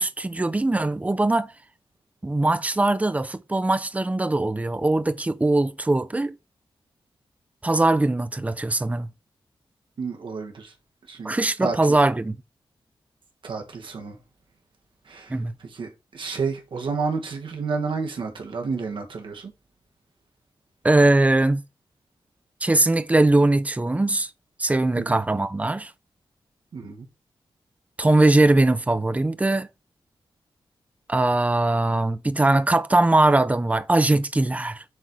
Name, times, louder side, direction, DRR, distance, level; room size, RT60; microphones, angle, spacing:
voice 1, 0.0-1.5 2.2-6.3 7.6-9.1 11.2-12.4 15.3-15.5 20.8-21.6 22.6-24.3 24.6-25.9 28.0-29.7 31.1-34.8, right 2 dB, 15° right, 0.6 m, -21 dB
voice 2, 10.0-10.7 11.1-12.0 13.4-14.2 15.0-15.4 15.6-19.5 24.9-25.2 26.7-27.1, right 4 dB, 70° right, 1.5 m, -30 dB
7.5 x 4.2 x 4.6 m
wide cardioid pair, 130°, 9 cm